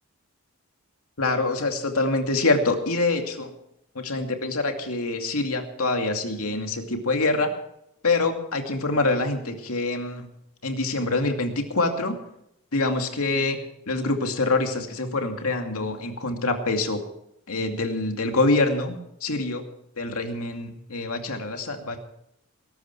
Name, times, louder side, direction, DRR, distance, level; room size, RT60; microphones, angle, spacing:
voice 1, 1.2-3.5 3.9-7.5 8.0-10.3 10.6-12.2 12.7-13.6 13.9-17.0 17.5-19.6 20.0-22.0, left 2 dB, 80° left, 4 dB, 2.4 m, -25 dB
20.0 x 12.0 x 4.6 m, 0.78 s
head